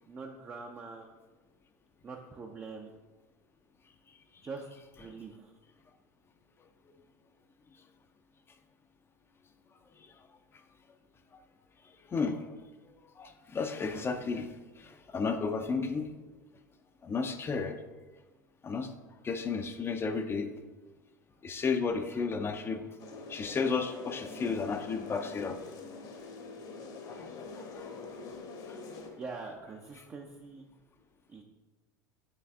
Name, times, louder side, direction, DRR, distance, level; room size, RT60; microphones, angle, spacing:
voice 1, 0.1-1.1 2.0-2.9 4.4-4.7 5.0-5.5 29.2-30.7 31.3-31.4, right 4 dB, 20° right, 1 dB, 0.6 m, -43 dB
voice 2, 12.1-12.4 13.2-14.5 14.8-16.1 17.0-17.8 18.6-18.9 19.2-20.5 21.4-22.8 23.3-25.6 27.1-27.3 27.7-27.8 29.9-30.0, left 5 dB, 20° left, 7 dB, 0.6 m, -32 dB
sound 1, 23.0-29.1, left 4 dB, 40° left, 1.0 m, -45 dB
8.6 x 3.3 x 3.6 m, 1.2 s
figure-of-eight pair, 80°, 10 cm